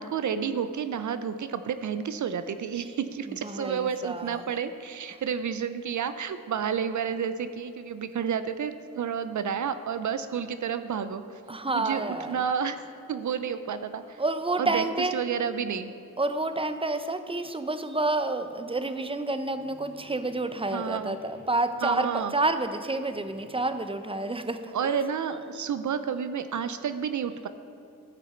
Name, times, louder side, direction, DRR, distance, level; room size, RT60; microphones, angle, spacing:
voice 1, 0.0-11.4 11.7-12.8 13.1-14.2 14.6-15.9 20.7-21.2 21.8-22.3 24.7-27.5, right 7 dB, 60° right, 11 dB, 0.5 m, -30 dB
voice 2, 3.3-4.4 11.5-12.4 14.2-15.1 16.2-24.9, right 2 dB, 15° right, 9 dB, 0.6 m, -29 dB
sound 1, 19.4-22.4 22.8-23.8, right 1 dB, 70° left, 2.1 m, -53 dB
11.5 x 6.2 x 4.3 m, 2.8 s
cardioid pair, 45°, 33 cm